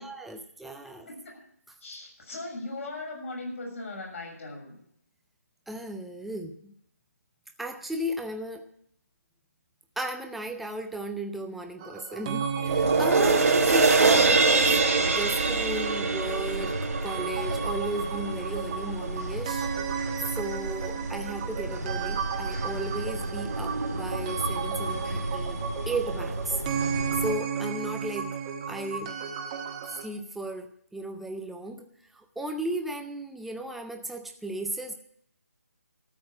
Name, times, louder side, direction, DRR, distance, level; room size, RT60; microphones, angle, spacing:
voice 1, 0.0-1.1 5.7-6.7 7.6-8.7 10.0-19.7 20.4-25.6 25.9-26.6 27.2-28.4 28.7-29.2 29.9-34.9, right 1 dB, ahead, 5 dB, 0.6 m, -35 dB
voice 2, 1.1-1.4 1.8-4.8, left 2 dB, 55° left, -1 dB, 6.9 m, -38 dB
sound 1, 11.8-30.1, right 7 dB, 20° right, 1.3 m, -34 dB
sound 2, 12.6-19.2 19.6-19.7, right 3 dB, 60° right, 1.8 m, -24 dB
sound 3, 12.7-27.3, right 2 dB, 80° right, 2.4 m, -34 dB
13.0 x 7.5 x 8.3 m, 0.69 s
figure-of-eight pair, 150°, 9 cm